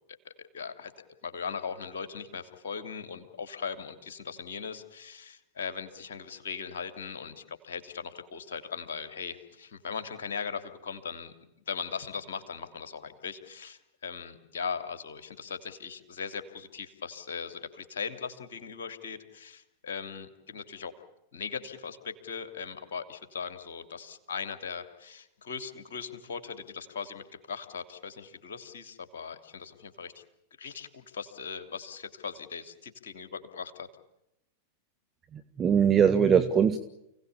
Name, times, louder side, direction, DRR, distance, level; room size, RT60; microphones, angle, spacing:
voice 1, 0.4-0.9 1.2-11.3 11.7-20.9 21.3-30.2 30.6-33.9, left 6 dB, 60° left, 8 dB, 3.1 m, -39 dB
voice 2, 35.3-36.8, right 7 dB, 25° right, 10 dB, 1.3 m, -22 dB
29.5 x 17.5 x 8.6 m, 0.87 s
figure-of-eight pair, 90°, 0 cm